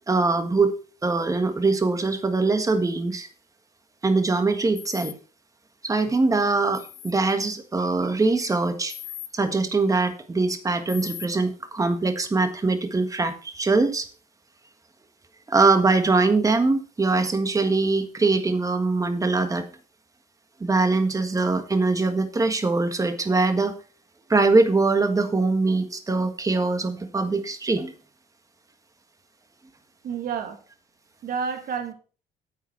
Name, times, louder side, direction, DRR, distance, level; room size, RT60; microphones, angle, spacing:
voice 1, 0.1-0.7 1.0-3.3 4.0-5.1 5.8-8.9 9.3-14.1 15.5-19.6 20.6-23.7 24.3-27.9, right 3 dB, 20° right, 8 dB, 1.5 m, -22 dB
sound 1, 4.8-5.1 6.7-7.1 8.9-9.3 10.9-11.3, left 10 dB, 65° left, 1.9 m, -38 dB
voice 2, 30.0-30.6 31.2-31.9, right 6 dB, 60° right, 5 dB, 2.2 m, -29 dB
9.2 x 8.2 x 4.5 m, 0.37 s
cardioid pair, 110°, 17 cm